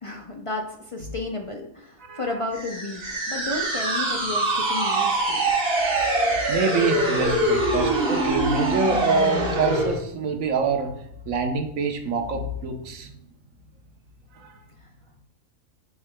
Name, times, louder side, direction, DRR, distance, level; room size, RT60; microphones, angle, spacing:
voice 1, 0.0-5.5, left 2 dB, 50° left, 2 dB, 0.4 m, -32 dB
voice 2, 2.0-2.4 5.7-6.1 6.5-13.1 14.3-14.6, right 4 dB, 75° right, 4 dB, 1.2 m, -26 dB
sound 1, 2.5-10.0, right 2 dB, 50° right, 1.4 m, -24 dB
8.2 x 5.5 x 2.2 m, 0.75 s
omnidirectional pair, 1.4 m